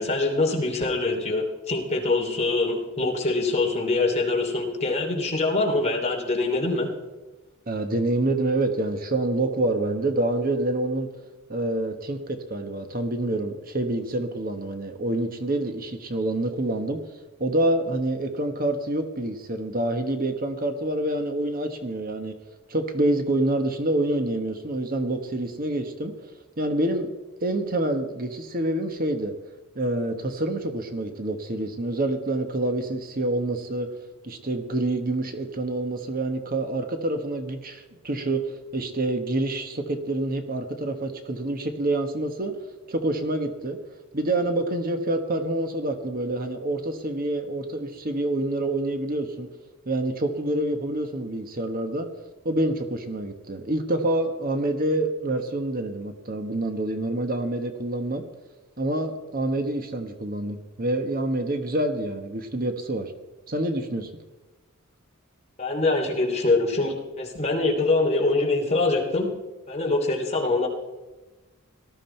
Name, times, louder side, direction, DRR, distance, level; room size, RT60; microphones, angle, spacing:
voice 1, 0.0-6.9 65.6-69.3 69.7-70.7, left 2 dB, 30° left, 0 dB, 2.9 m, -24 dB
voice 2, 7.7-11.1 11.5-17.0 17.4-22.3 22.7-26.1 26.6-27.1 27.4-29.3 29.7-33.9 34.2-42.5 42.9-43.8 44.1-49.5 49.9-52.1 52.4-58.2 58.8-63.1 63.5-64.1, right 1 dB, 40° right, 6 dB, 1.3 m, -27 dB
18.5 x 13.0 x 4.5 m, 1.1 s
head